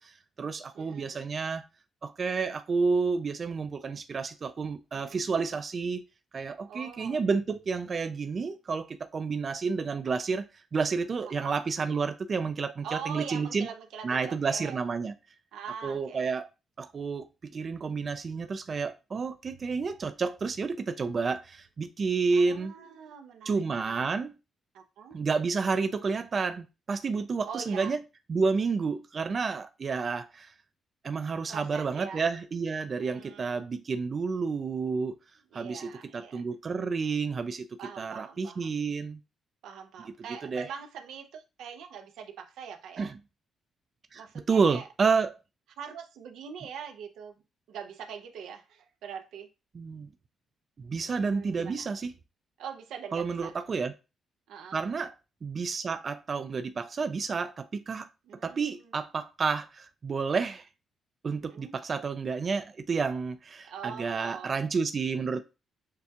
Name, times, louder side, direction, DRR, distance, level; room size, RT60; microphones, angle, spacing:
voice 1, 0.0-1.6 2.0-6.0 6.3-13.7 14.0-15.1 15.8-16.5 16.8-22.7 23.5-24.3 25.1-28.0 28.3-30.5 31.0-35.2 35.5-37.7 38.0-39.2 40.4-40.7 43.0-43.2 44.1-45.4 49.7-50.1 50.8-52.1 53.1-53.9 54.7-55.1 55.4-58.1 58.4-60.7 61.2-65.4, right 5 dB, 35° right, 0.4 m, -30 dB
voice 2, 0.7-1.2 4.9-5.3 6.7-7.2 11.2-11.6 12.8-14.8 15.5-16.3 22.3-24.0 24.7-25.2 27.5-27.9 31.5-32.2 32.9-33.6 35.5-36.4 37.8-38.8 39.6-43.1 44.1-44.9 45.8-47.4 47.7-49.5 51.0-51.9 52.6-53.5 54.5-54.8 58.3-58.9 61.4-61.7 63.6-64.5, right 7 dB, 85° right, 0.7 m, -43 dB
6.5 x 2.3 x 2.8 m
cardioid pair, 140°, 0 cm